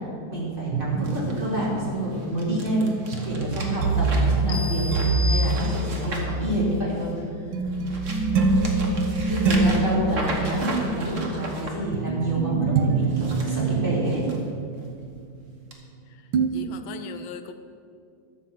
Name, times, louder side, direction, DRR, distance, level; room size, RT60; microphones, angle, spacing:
voice 1, 0.3-7.4 9.3-14.2, right 1 dB, 25° right, -6 dB, 3.3 m, -28 dB
sound 1, 0.7-16.0 16.3-16.5, right 3 dB, 75° right, 1.4 m, -26 dB
sound 2, 1.0-7.2 7.6-11.7 13.0-14.4 14.8-15.1 15.7-15.8, right 2 dB, 40° right, 1.7 m, -36 dB
sound 3, 4.5-6.2, left 3 dB, 60° left, 1.3 m, -34 dB
voice 2, 9.6-10.0 16.5-17.5, left 8 dB, 85° left, 9 dB, 1.5 m, -38 dB
12.5 x 7.2 x 7.4 m, 2.3 s
omnidirectional pair, 2.1 m